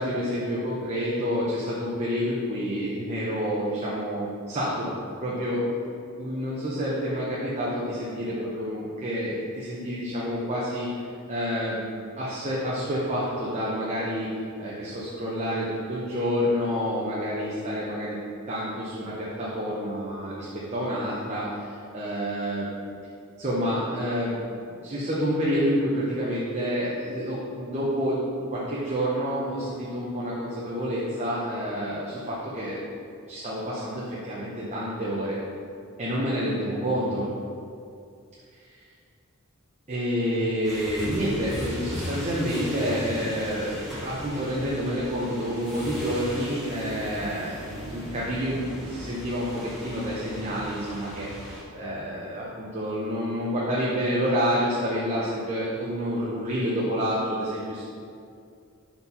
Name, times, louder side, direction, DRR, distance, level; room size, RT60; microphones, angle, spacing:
voice 1, 0.0-5.0 5.2-5.6 6.2-10.9 11.3-11.9 12.2-14.3 14.6-18.2 18.5-21.6 21.9-22.7 23.4-24.4 24.8-28.2 28.5-32.8 33.3-35.4 36.0-37.3 39.9-51.3 51.7-57.8, equal, 30° right, -7 dB, 0.8 m, -28 dB
sound 1, 40.6-51.6, equal, ahead, 1.3 m, -38 dB
4.4 x 4.2 x 5.4 m, 2.4 s
head